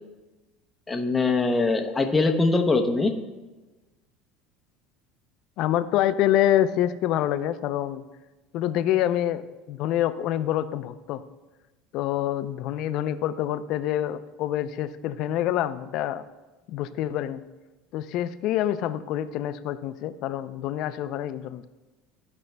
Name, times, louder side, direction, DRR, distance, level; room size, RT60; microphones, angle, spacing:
voice 1, 0.9-3.1, left 3 dB, 15° left, 4 dB, 0.7 m, -22 dB
voice 2, 5.6-8.0 8.5-11.2 11.9-16.2 16.7-17.4 17.9-21.6, left 12 dB, 60° left, 12 dB, 0.4 m, -26 dB
14.5 x 5.3 x 2.2 m, 1.2 s
supercardioid pair, 125°, 0 cm